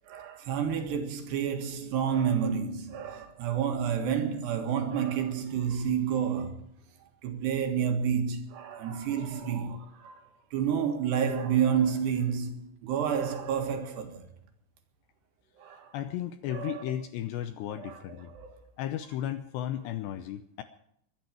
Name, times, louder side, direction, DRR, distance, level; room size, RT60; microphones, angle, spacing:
voice 1, 0.0-6.7 7.0-10.2 10.5-14.3 15.6-15.9 16.5-17.0 17.8-18.6, right 7 dB, 65° right, 3.5 m, -30 dB
voice 2, 15.9-18.3 18.8-20.6, left 11 dB, 80° left, 2.6 m, -34 dB
22.5 x 12.0 x 4.6 m
omnidirectional pair, 5.7 m